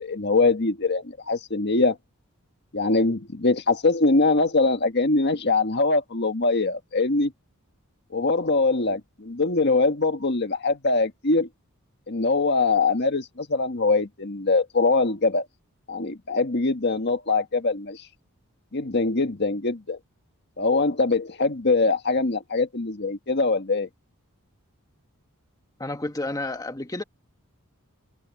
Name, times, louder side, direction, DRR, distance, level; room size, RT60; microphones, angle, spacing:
voice 1, 0.0-2.0 2.7-7.3 8.1-11.5 12.1-15.5 15.9-18.0 18.7-20.0 20.6-23.9, left 3 dB, 50° left, 1.6 m, -23 dB
voice 2, 25.8-27.0, left 2 dB, 15° left, 1.5 m, -30 dB
head